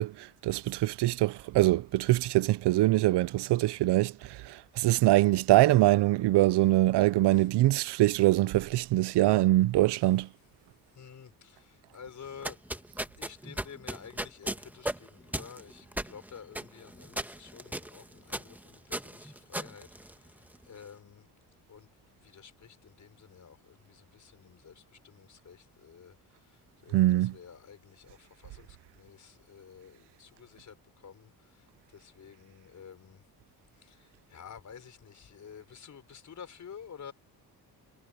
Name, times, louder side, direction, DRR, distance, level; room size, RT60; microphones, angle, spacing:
voice 1, 0.0-4.1 4.5-10.3 26.9-27.3, right 16 dB, 85° right, 0.6 m, -24 dB
voice 2, 10.9-12.6 13.1-21.3 21.7-21.9 22.2-33.2 33.8-37.1, left 7 dB, 45° left, 5.6 m, -51 dB
sound 1, 12.3-20.6, right 1 dB, 5° right, 1.5 m, -38 dB
cardioid pair, 135°, 39 cm